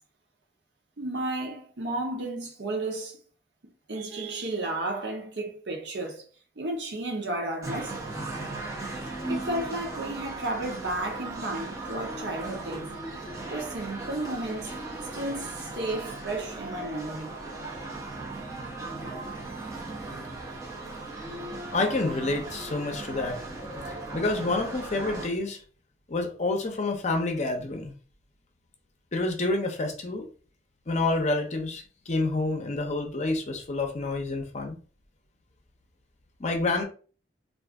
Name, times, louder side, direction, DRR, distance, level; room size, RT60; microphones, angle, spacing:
voice 1, 1.0-3.2 3.9-6.3 6.6-8.0 9.3-13.0 13.5-14.8 15.1-17.4, right 2 dB, 65° right, 0.8 m, -33 dB
sound 1, 7.6-25.3, right 2 dB, 20° right, 0.8 m, -37 dB
voice 2, 21.7-23.4 23.9-25.6 26.1-27.9 29.1-30.3 30.9-34.8 36.4-36.8, left 2 dB, 40° left, 0.6 m, -28 dB
2.5 x 2.5 x 3.5 m
head